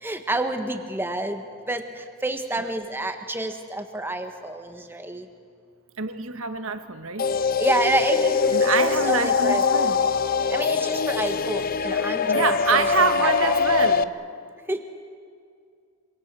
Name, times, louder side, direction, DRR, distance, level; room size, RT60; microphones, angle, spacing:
voice 1, 0.0-5.3 7.6-9.9 10.5-13.6 14.7-14.8, right 1 dB, 10° right, 6 dB, 1.5 m, -29 dB
voice 2, 6.0-7.3 8.5-10.0 12.3-14.1, right 4 dB, 75° right, 8 dB, 1.7 m, -26 dB
sound 1, 7.2-14.0, left 5 dB, 40° left, 0.6 m, -23 dB
26.5 x 25.5 x 7.7 m, 2.2 s
head